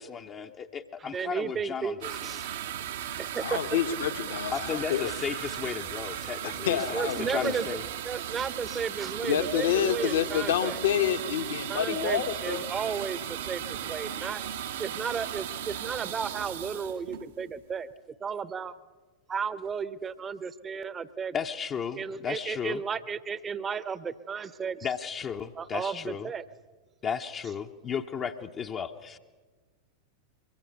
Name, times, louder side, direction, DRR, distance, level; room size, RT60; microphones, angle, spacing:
voice 1, 0.0-2.1 4.5-7.8 21.3-22.8 24.8-26.3 27.0-29.2, left 7 dB, 30° left, 3 dB, 0.9 m, -34 dB
voice 2, 1.0-2.7 3.2-3.6 6.9-7.8 8.0-10.8 11.7-14.4 14.8-17.9 18.2-18.7 19.3-21.3 21.9-24.9 25.5-26.4, right 6 dB, 20° right, 16 dB, 1.0 m, -34 dB
sound 1, 2.0-17.7, right 10 dB, 60° right, 1.1 m, -36 dB
voice 3, 3.4-5.1 6.4-7.6 9.2-12.6, left 9 dB, 60° left, 9 dB, 1.4 m, -28 dB
23.5 x 23.5 x 6.7 m, 1.3 s
figure-of-eight pair, 90°, 0 cm